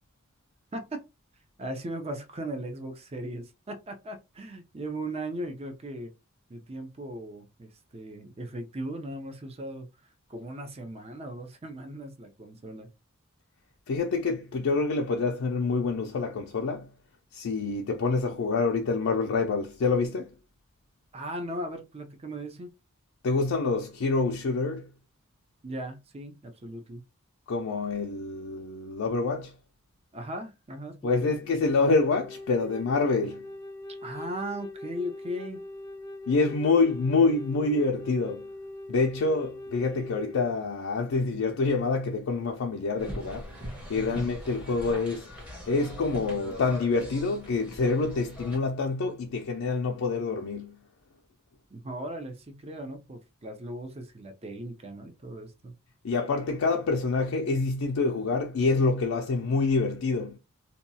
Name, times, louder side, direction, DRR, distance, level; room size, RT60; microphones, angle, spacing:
voice 1, 0.7-1.0 1.6-6.1 6.5-9.9 10.3-12.9 21.1-22.7 25.6-27.0 30.1-31.4 34.0-35.6 44.0-44.3 51.7-55.8, right 1 dB, 30° right, 0.5 m, -38 dB
voice 2, 13.9-16.9 17.3-20.3 23.2-24.9 27.5-29.5 31.0-33.5 36.3-38.5 38.9-43.5 43.9-45.3 45.7-50.8 56.0-60.4, left 3 dB, 75° left, 0.4 m, -26 dB
Wind instrument woodwind instrument, 31.9-40.5, left 2 dB, 15° left, 0.5 m, -42 dB
sound 1, 43.0-48.6, equal, 5° right, 0.8 m, -41 dB
2.8 x 2.3 x 2.6 m
head